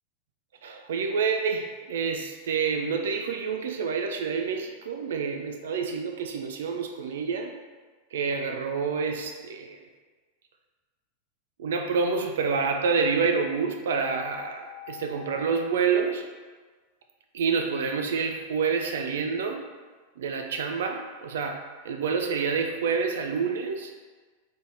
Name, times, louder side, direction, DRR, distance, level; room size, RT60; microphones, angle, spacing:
voice 1, 0.6-7.5 8.1-9.8 11.6-16.3 17.3-19.7 20.2-23.9, right 5 dB, 60° right, 4 dB, 0.3 m, -28 dB
sound 1, 14.0-15.6, left 10 dB, 30° left, 0.9 m, -43 dB
4.1 x 3.4 x 3.3 m, 1.4 s
figure-of-eight pair, 90°, 0 cm